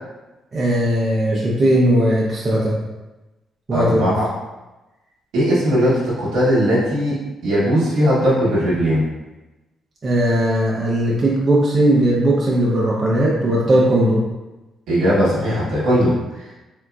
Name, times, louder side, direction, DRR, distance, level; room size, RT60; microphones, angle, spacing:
voice 1, 0.5-2.8 3.7-4.2 10.0-14.2, right 1 dB, 35° right, -5 dB, 0.7 m, -18 dB
voice 2, 3.7-4.3 5.3-7.1 7.4-9.0 14.9-16.1, equal, 85° right, -8 dB, 1.2 m, -18 dB
3.6 x 2.8 x 2.3 m, 1.0 s
cardioid pair, 90°, 0 cm